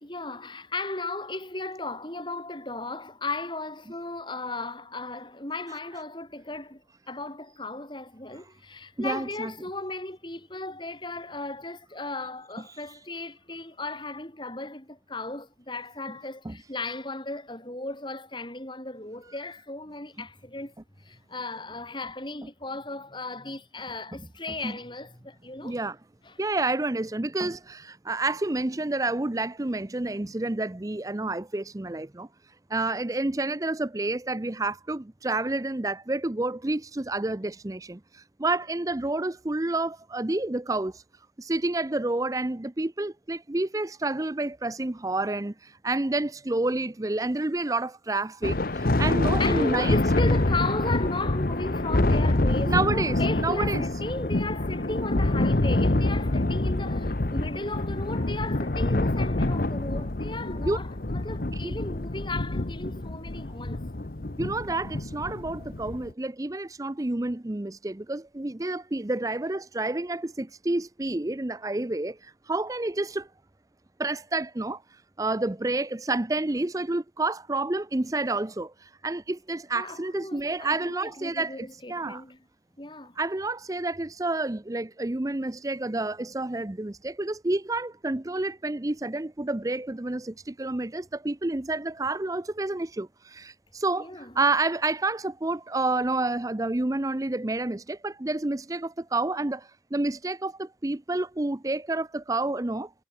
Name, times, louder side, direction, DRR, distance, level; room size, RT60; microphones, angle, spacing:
voice 1, 0.0-25.8 26.2-26.4 49.4-64.0 79.7-82.4 82.8-83.2 94.0-94.3, left 2 dB, 25° left, 3.8 m, -36 dB
voice 2, 9.0-9.5 12.7-12.8 16.5-16.6 24.6-24.7 25.6-26.0 26.4-32.3 32.7-41.0 41.4-50.0 52.7-53.8 60.6-60.8 61.6-61.7 64.4-73.3 74.0-82.2 83.2-102.9, right 2 dB, 20° right, 0.5 m, -29 dB
Thunder, 48.4-66.1, left 2 dB, 50° left, 1.1 m, -26 dB
head